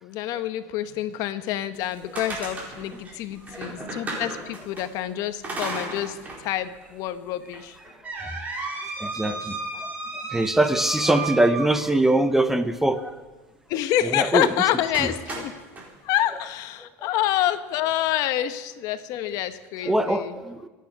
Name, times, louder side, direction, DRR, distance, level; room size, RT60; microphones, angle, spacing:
voice 1, 0.0-7.8 9.2-9.4 9.7-9.9 10.3-10.4 11.1-11.3 13.7-15.5 16.0-20.4, left 12 dB, 55° left, 11 dB, 1.0 m, -27 dB
sound 1, 1.7-4.8 5.4-6.4 6.8-6.9 7.5-12.2 14.3-14.5 14.9-15.9, right 3 dB, 20° right, 4.4 m, -34 dB
voice 2, 3.5-4.2 9.0-9.5 10.3-13.0 14.1-14.5 15.0-15.1 19.9-20.7, right 1 dB, 5° right, 10 dB, 0.7 m, -22 dB
26.0 x 9.4 x 5.9 m, 1.3 s
supercardioid pair, 140°, 7 cm